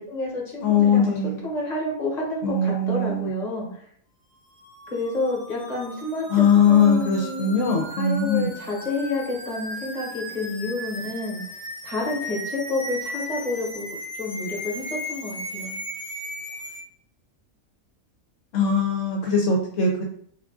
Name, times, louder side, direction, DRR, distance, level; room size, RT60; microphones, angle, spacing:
voice 1, 0.0-1.1 1.4-3.7 4.9-7.6 8.0-13.8 14.2-15.7, left 2 dB, 30° left, -3 dB, 1.0 m, -29 dB
voice 2, 0.6-1.4 2.4-3.4 6.3-8.5 18.5-20.0, left 5 dB, 70° left, -1 dB, 0.9 m, -20 dB
sound 1, 4.6-16.8, equal, 5° left, 0.7 m, -36 dB
3.3 x 2.4 x 3.6 m, 0.63 s
omnidirectional pair, 1.5 m